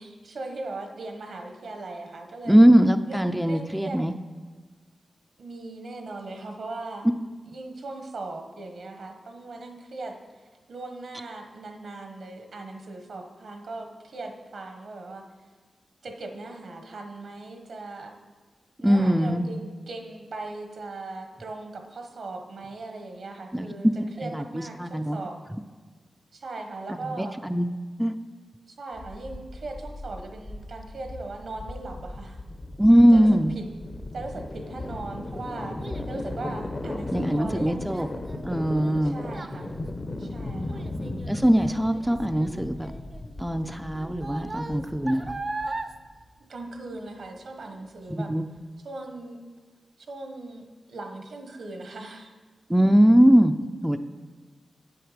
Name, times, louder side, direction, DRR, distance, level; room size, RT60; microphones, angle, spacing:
voice 1, 0.0-2.6 3.1-4.0 5.4-7.1 7.5-10.2 10.7-15.3 16.0-18.2 18.8-23.9 24.2-25.4 26.3-27.4 28.7-32.4 33.1-33.3 33.5-33.6 34.1-35.8 36.1-38.1 39.0-39.8 40.2-40.9 46.5-48.3 48.8-49.4 50.1-52.3, right 2 dB, 75° right, 4 dB, 1.2 m, -39 dB
voice 2, 2.5-4.1 18.8-19.5 23.5-23.7 24.2-25.2 27.2-27.7 28.0-28.2 32.8-33.5 37.1-38.1 38.4-39.2 41.3-42.9 43.4-45.4 48.1-48.4 52.7-53.5 53.8-54.0, equal, 5° right, 7 dB, 0.5 m, -21 dB
sound 1, 28.9-46.0, left 2 dB, 45° left, 1.0 m, -37 dB
Child speech kid speaking, 34.6-47.3 47.6-48.1 48.6-48.7, right 2 dB, 45° right, 0.6 m, -40 dB
8.8 x 7.9 x 5.1 m, 1.4 s
cardioid pair, 55°, 0 cm